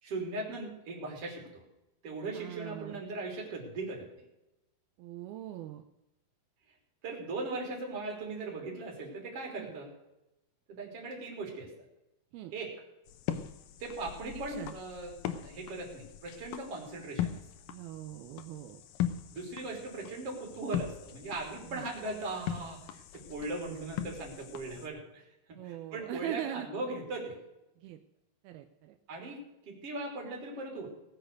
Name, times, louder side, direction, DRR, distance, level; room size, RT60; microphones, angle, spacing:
voice 1, 0.0-1.6 2.0-4.1 7.0-9.9 10.7-11.7 12.5-12.7 13.8-15.2 15.4-17.4 19.3-27.4 29.1-30.9, right 2 dB, 40° right, 0 dB, 4.1 m, -39 dB
voice 2, 2.3-3.0 5.0-5.8 9.6-9.8 12.3-12.5 14.2-14.7 17.7-18.8 21.7-21.9 23.5-24.0 25.5-26.7 27.8-28.0 28.4-29.0, right 13 dB, 85° right, 7 dB, 2.6 m, -42 dB
sound 1, 13.1-24.9, left 11 dB, 75° left, 2.4 m, -40 dB
19.5 x 6.7 x 6.6 m, 0.92 s
omnidirectional pair, 4.4 m